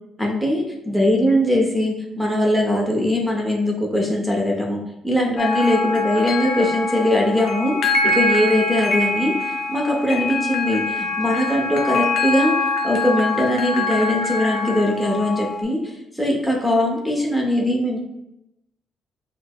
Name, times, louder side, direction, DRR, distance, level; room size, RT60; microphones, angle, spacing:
voice 1, 0.2-18.0, left 1 dB, 5° right, -1 dB, 0.7 m, -21 dB
sound 1, 5.4-15.6, left 3 dB, 70° left, 0.5 m, -24 dB
4.5 x 2.0 x 2.2 m, 0.84 s
cardioid pair, 90°, 0 cm